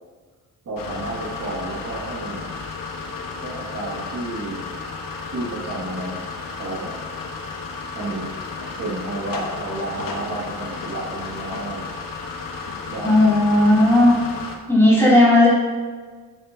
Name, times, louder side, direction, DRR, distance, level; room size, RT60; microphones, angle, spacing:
voice 1, 0.6-2.5 3.4-4.7 5.3-6.2 6.5-6.9 7.9-8.4 8.8-12.0 12.9-13.3, right 2 dB, 60° right, -5 dB, 2.1 m, -31 dB
sound 1, 0.8-14.6, left 4 dB, 75° left, 1.1 m, -33 dB
voice 2, 13.0-14.2 14.7-15.5, left 1 dB, 10° left, -8 dB, 2.7 m, -14 dB
10.0 x 8.9 x 2.7 m, 1.5 s
wide cardioid pair, 165°, 34 cm